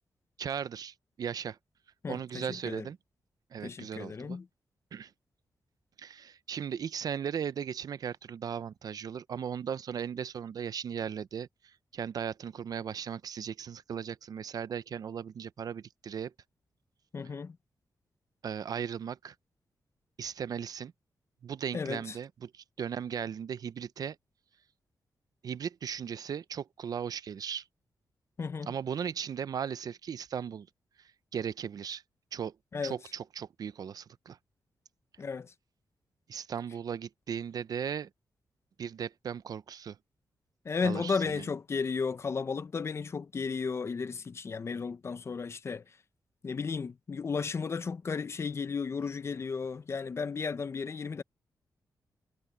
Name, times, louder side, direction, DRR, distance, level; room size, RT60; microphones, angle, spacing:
voice 1, 0.4-1.6 2.1-3.0 3.5-4.4 4.9-5.1 6.0-16.3 18.4-19.3 20.2-20.9 21.4-24.2 25.4-27.6 28.7-30.7 31.3-32.0 32.3-32.5 32.8-34.4 36.3-38.1 38.8-40.0 40.8-41.5, right 8 dB, 60° right, 0.6 m, -37 dB
voice 2, 2.0-2.9 3.6-4.5 17.1-17.6 21.7-22.0 28.4-28.7 32.7-32.9 35.2-35.5 40.6-45.8 46.4-51.2, left 5 dB, 40° left, 0.6 m, -34 dB
wide cardioid pair, 135°, 7 cm